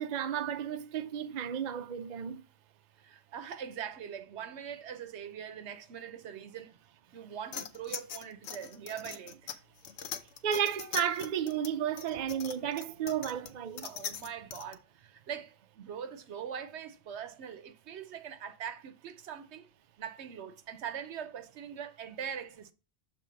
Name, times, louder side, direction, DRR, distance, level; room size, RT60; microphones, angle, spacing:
voice 1, 0.0-2.4 10.4-13.9, right 9 dB, 55° right, 0.5 m, -33 dB
voice 2, 3.0-6.7 7.1-9.6 13.8-19.7 20.0-22.7, right 8 dB, 70° right, 1.0 m, -42 dB
sound 1, 7.5-14.7, left 8 dB, 75° left, 1.0 m, -42 dB
6.7 x 3.4 x 5.0 m
omnidirectional pair, 1.2 m